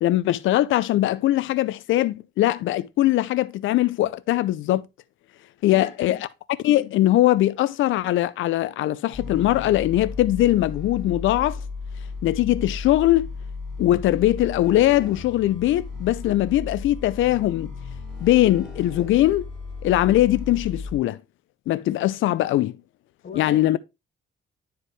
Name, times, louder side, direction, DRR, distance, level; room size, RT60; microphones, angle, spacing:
voice 1, 0.0-4.8 5.6-6.3 6.6-11.6 12.2-13.3 13.8-17.7 18.2-19.5 19.8-21.2 21.7-22.7 23.3-23.8, left 14 dB, 80° left, 0.5 m, -21 dB
voice 2, 5.7-6.2 23.2-23.8, left 5 dB, 50° left, 1.9 m, -38 dB
sound 1, 9.1-21.0, left 4 dB, ahead, 5.6 m, -35 dB
9.9 x 4.7 x 3.2 m
cardioid pair, 90°, 20 cm